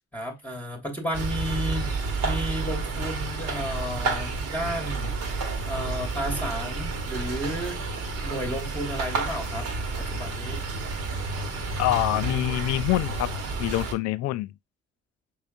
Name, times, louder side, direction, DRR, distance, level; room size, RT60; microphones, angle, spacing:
voice 1, 0.1-5.2 5.7-7.8 8.2-9.7 10.0-10.6, equal, 5° left, 1.1 m, -32 dB
sound 1, 1.1-13.9, right 3 dB, 50° right, 1.1 m, -30 dB
voice 2, 11.8-13.3 13.6-14.5, left 16 dB, 55° left, 0.4 m, -25 dB
5.5 x 3.2 x 2.4 m
figure-of-eight pair, 40°, 33 cm